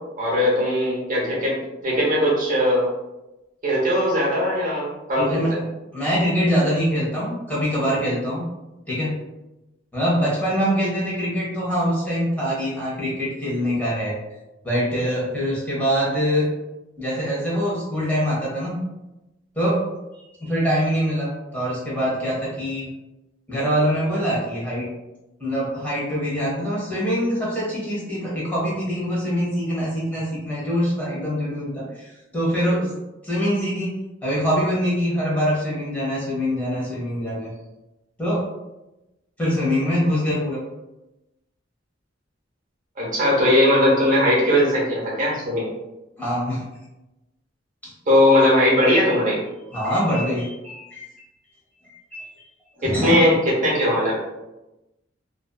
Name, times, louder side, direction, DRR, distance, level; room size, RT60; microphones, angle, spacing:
voice 1, 0.2-1.6 1.8-2.8 3.6-5.6 43.0-45.7 48.1-49.4 52.8-54.2, left 1 dB, 45° right, -5 dB, 0.9 m, -19 dB
voice 2, 5.2-5.5 5.9-8.4 8.9-9.1 9.9-14.2 14.6-16.5 17.0-18.7 19.6-19.8 20.1-22.9 23.5-24.9 25.4-32.9 33.2-33.9 34.2-37.5 38.2-38.5 39.4-40.6 46.2-46.6 47.8-47.9 49.7-51.1 51.8-52.3 52.8-53.1, equal, 10° left, -7 dB, 0.8 m, -24 dB
2.5 x 2.4 x 2.2 m, 0.99 s
head